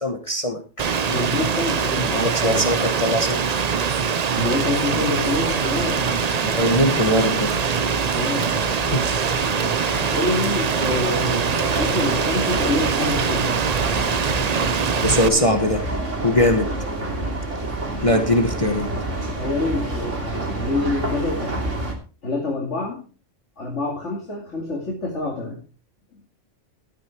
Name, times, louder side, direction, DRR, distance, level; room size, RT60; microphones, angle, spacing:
voice 1, 0.0-0.6 2.1-3.4 6.4-7.5 8.9-9.1 9.7-10.2 15.0-15.8 16.2-16.7 18.0-18.9, left 1 dB, 30° left, 4 dB, 1.3 m, -21 dB
Rain, 0.8-15.3, right 6 dB, 40° right, 0.6 m, -23 dB
voice 2, 1.1-2.7 4.4-6.2 8.1-8.5 9.6-13.6 16.7-16.8 19.4-21.6 22.2-23.0 23.6-25.6, left 2 dB, 70° left, -2 dB, 2.8 m, -27 dB
sound 1, 5.2-21.9, right 2 dB, 75° right, 3.3 m, -29 dB
13.0 x 9.3 x 4.5 m, 0.35 s
omnidirectional pair, 1.3 m